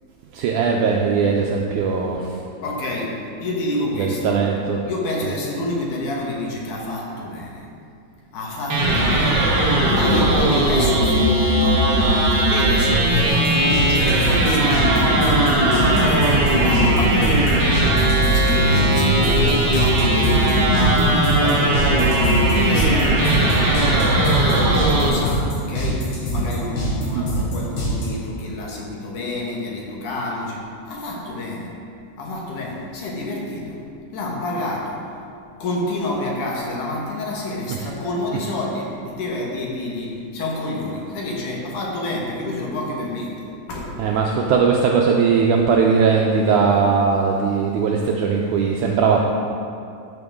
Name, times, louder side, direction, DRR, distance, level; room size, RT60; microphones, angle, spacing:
voice 1, 0.3-2.3 4.0-4.8 27.1-27.3 44.0-49.2, right 5 dB, 80° right, 0 dB, 1.8 m, -19 dB
voice 2, 2.6-4.4 4.8-7.7 8.3-15.0 15.6-17.5 18.3-31.7 32.2-33.8 34.1-35.1 35.6-44.0, left 2 dB, 65° left, -2 dB, 2.6 m, -29 dB
sound 1, 8.7-25.1, right 1 dB, 65° right, 1.0 m, -18 dB
sound 2, 13.3-28.1, right 1 dB, 85° left, 4.3 m, -24 dB
12.5 x 7.0 x 3.6 m, 2.5 s
omnidirectional pair, 4.1 m